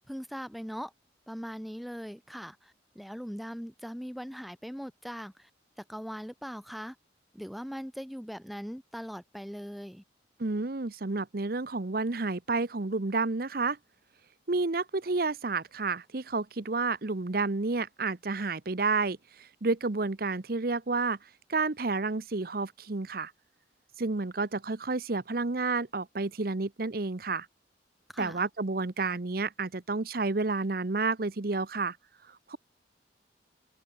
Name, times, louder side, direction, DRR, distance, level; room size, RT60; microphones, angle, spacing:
voice 1, 0.1-0.9 1.3-5.5 5.8-7.0 7.3-10.0 28.1-28.5, equal, ahead, 1.2 m, -40 dB
voice 2, 10.4-13.8 14.5-23.3 24.0-27.5 28.2-32.0 32.3-32.6, right 3 dB, 50° right, 0.9 m, -30 dB
head